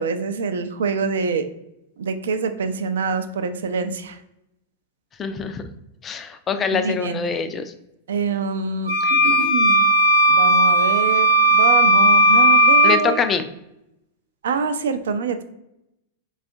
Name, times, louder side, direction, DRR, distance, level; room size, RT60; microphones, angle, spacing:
voice 1, 0.0-1.5 2.0-4.2 6.7-7.2 8.1-9.8 10.3-13.2 14.4-15.4, right 5 dB, 70° right, 9 dB, 0.3 m, -25 dB
voice 2, 5.2-5.6 6.0-7.7 9.0-9.2 12.8-13.5, left 6 dB, 25° left, 8 dB, 0.4 m, -24 dB
sound 1, 8.8-13.0, right 1 dB, 70° left, 0.7 m, -15 dB
4.1 x 2.3 x 2.6 m, 0.86 s
figure-of-eight pair, 95°, 0 cm